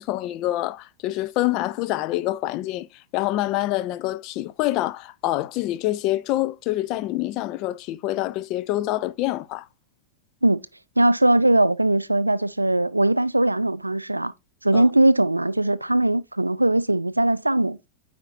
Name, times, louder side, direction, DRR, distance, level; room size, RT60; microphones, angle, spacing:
voice 1, 0.0-2.9 3.1-9.7 14.7-14.8, left 16 dB, 40° left, 0.4 m, -26 dB
voice 2, 11.0-14.3 14.6-17.9, right 1 dB, 85° right, 0.4 m, -20 dB
8.9 x 4.2 x 2.6 m
figure-of-eight pair, 90°, 0 cm